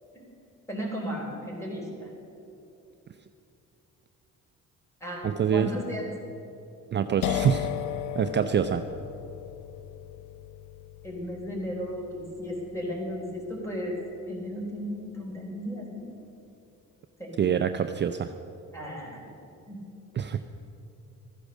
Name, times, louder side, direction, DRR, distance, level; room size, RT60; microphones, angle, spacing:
voice 1, 0.7-2.1 5.0-5.2 5.5-6.1 11.0-14.0 14.3-16.0 17.2-17.3 18.7-19.3 19.7-19.8, equal, 10° left, -1 dB, 3.9 m, -35 dB
voice 2, 5.2-5.7 6.9-7.7 8.2-8.8 17.4-18.3 20.1-20.4, right 8 dB, 35° right, 8 dB, 0.5 m, -25 dB
sound 1, 7.2-14.8, left 11 dB, 90° left, 0.6 m, -37 dB
13.5 x 10.0 x 6.5 m, 2.7 s
cardioid pair, 90°, 30 cm